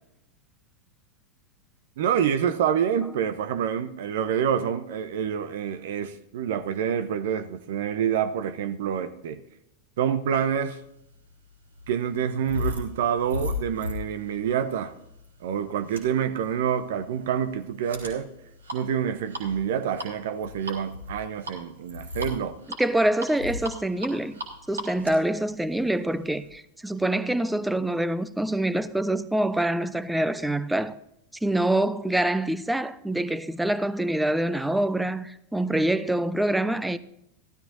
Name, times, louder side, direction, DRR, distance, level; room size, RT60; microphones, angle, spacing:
voice 1, 2.0-9.4 10.0-10.8 11.9-14.9 15.4-18.3 18.7-22.6, right 8 dB, 55° right, 0.8 m, -27 dB
sound 1, 10.8-26.5, left 2 dB, 75° right, 3.3 m, -37 dB
voice 2, 22.8-24.4 24.7-30.9 31.4-37.0, right 1 dB, 5° right, 0.6 m, -25 dB
16.0 x 12.5 x 2.7 m
figure-of-eight pair, 90°, 0 cm